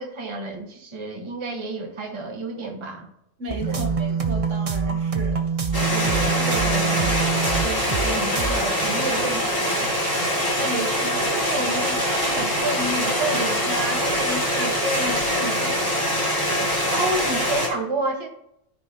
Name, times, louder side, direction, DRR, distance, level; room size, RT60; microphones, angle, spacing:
voice 1, 0.0-3.1 3.7-3.9 5.9-7.2 7.6-9.9 16.9-18.3, right 2 dB, 20° right, 1 dB, 1.2 m, -30 dB
voice 2, 3.4-5.5 10.6-16.0, right 1 dB, 60° right, 0 dB, 1.5 m, -31 dB
sound 1, 3.5-8.1 8.4-8.5, right 5 dB, 40° right, 0.5 m, -25 dB
sound 2, 5.7-17.7, equal, 15° left, 2.1 m, -24 dB
13.0 x 5.5 x 2.8 m, 0.77 s
omnidirectional pair, 1.5 m